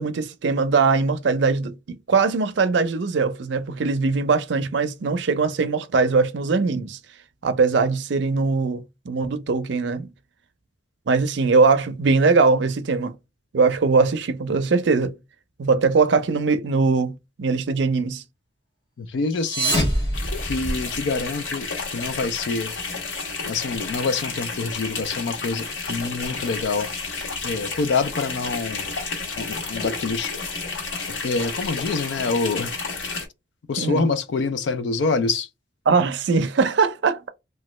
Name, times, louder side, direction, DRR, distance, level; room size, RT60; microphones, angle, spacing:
voice 1, 0.0-7.0 7.4-10.1 11.1-13.1 13.5-15.1 15.6-18.2 33.8-34.0 35.9-37.3, right 4 dB, 70° right, 0.5 m, -21 dB
voice 2, 19.0-19.9 20.4-22.7 23.5-26.9 27.4-28.9 29.4-30.3 31.2-32.7 33.7-35.5, left 4 dB, 75° left, 0.4 m, -26 dB
sound 1, 19.2-21.1, right 1 dB, 25° left, 1.6 m, -25 dB
sound 2, 20.1-33.3, left 4 dB, 90° left, 1.0 m, -31 dB
3.0 x 2.2 x 3.1 m
head